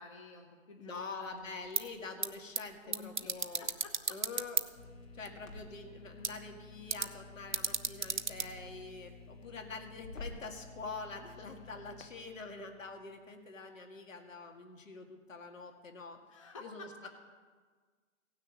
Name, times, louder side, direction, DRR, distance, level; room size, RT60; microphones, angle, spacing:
voice 1, 0.0-1.6 2.8-4.2 16.3-17.1, left 3 dB, 25° left, 2 dB, 0.8 m, -51 dB
voice 2, 0.8-3.7 4.1-4.6 5.1-16.2 16.6-16.9, left 3 dB, 70° left, 4 dB, 2.2 m, -45 dB
Crackle, 1.3-10.6, left 2 dB, 85° left, 2.7 m, -55 dB
sound 1, 1.6-9.4, right 4 dB, 40° right, 0.4 m, -38 dB
sound 2, 4.8-13.7, left 4 dB, 50° left, 1.0 m, -54 dB
16.0 x 6.5 x 8.9 m, 1.5 s
hypercardioid pair, 170°, 40 cm